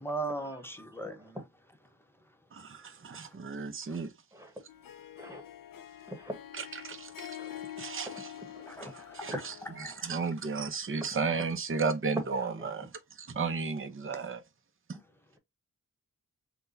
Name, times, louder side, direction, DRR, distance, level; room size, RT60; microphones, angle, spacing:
voice 1, 0.0-1.4 3.1-3.4 3.9-4.1 8.6-9.4 9.8-10.1 14.1-14.3 14.9-15.0, right 2 dB, 5° left, 0.9 m, -39 dB
voice 2, 2.5-4.1 6.6-7.4 7.8-8.3 9.2-9.5 9.8-12.9 13.2-14.4, right 4 dB, 40° right, 0.7 m, -34 dB
Harp, 4.7-10.0, left 11 dB, 80° left, 0.5 m, -46 dB
voice 3, 8.1-8.7 9.0-9.4 11.0-11.2 12.6-12.7, equal, 10° right, 1.4 m, -43 dB
5.9 x 2.3 x 2.7 m
wide cardioid pair, 100°, 33 cm